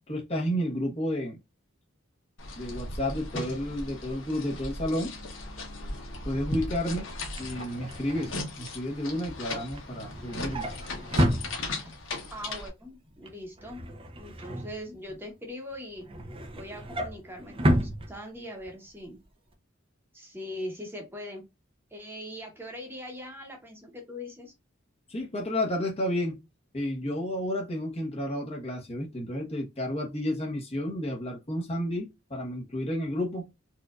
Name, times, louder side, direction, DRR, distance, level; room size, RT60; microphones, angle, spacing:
voice 1, 0.1-1.4 2.6-5.1 6.2-7.1 7.4-10.7 25.1-26.4 26.7-33.5, left 1 dB, 30° left, 1.0 m, -31 dB
sound 1, 2.4-12.7, left 2 dB, 70° left, 1.1 m, -38 dB
Drawer open or close, 7.1-12.1 12.5-12.8 13.1-15.3 15.7-18.7 19.1-19.3 19.5-19.6, equal, 30° right, 0.6 m, -32 dB
voice 2, 12.3-13.8 14.2-16.1 16.5-19.2 20.1-21.4 21.9-24.5, left 1 dB, 10° right, 1.0 m, -41 dB
4.4 x 2.5 x 2.4 m
head